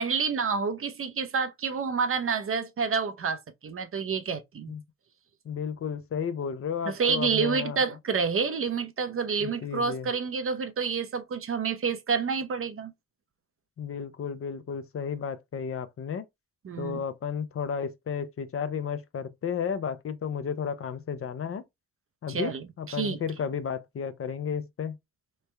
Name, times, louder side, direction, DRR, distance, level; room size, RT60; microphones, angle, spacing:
voice 1, 0.0-4.7 6.8-12.9 16.6-17.0 22.3-23.2, right 5 dB, 50° right, 0.7 m, -29 dB
voice 2, 5.5-7.8 9.4-10.1 13.8-16.2 16.8-21.6 22.2-25.0, left 7 dB, 50° left, 0.6 m, -33 dB
3.3 x 2.1 x 3.2 m
supercardioid pair, 45°, 29 cm